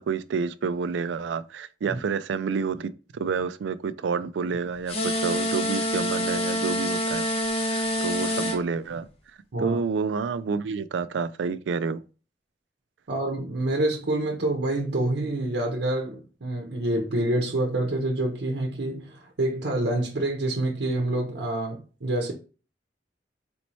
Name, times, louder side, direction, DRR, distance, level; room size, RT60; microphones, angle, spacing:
voice 1, 0.0-7.2 7.7-9.1 9.6-12.0, right 5 dB, 80° right, 0.4 m, -29 dB
sound 1, 4.9-8.6, equal, 35° left, 0.7 m, -26 dB
voice 2, 13.1-22.3, right 1 dB, 65° right, 0.7 m, -27 dB
4.2 x 3.0 x 2.7 m
head